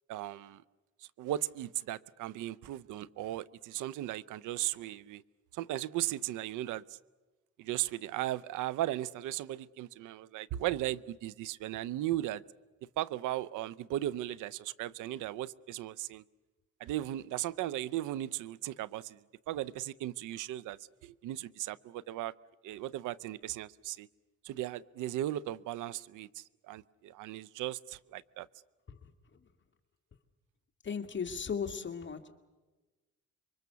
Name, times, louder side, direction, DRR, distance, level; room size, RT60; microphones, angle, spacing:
voice 1, 0.1-0.6 1.2-5.2 5.5-6.8 7.6-12.4 13.0-16.2 16.8-19.2 19.5-22.3 22.6-24.1 24.4-28.5, right 14 dB, 90° right, 0.7 m, -37 dB
voice 2, 30.8-32.3, left 6 dB, 40° left, 2.1 m, -36 dB
27.0 x 23.5 x 6.9 m
cardioid pair, 90°, 30 cm